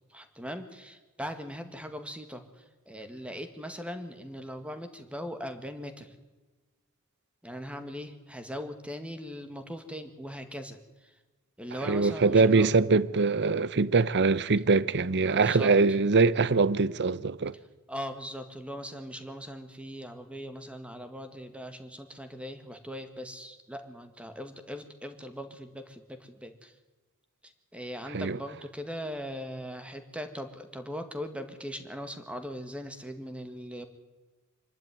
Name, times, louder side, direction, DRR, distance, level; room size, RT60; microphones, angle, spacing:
voice 1, 0.1-6.2 7.4-11.2 11.6-12.7 15.3-15.8 16.3-16.4 17.9-26.8 27.4-33.9, equal, 5° right, 1.9 m, -40 dB
voice 2, 11.9-17.6 28.1-28.4, right 4 dB, 55° right, 0.7 m, -23 dB
25.5 x 12.0 x 9.4 m
head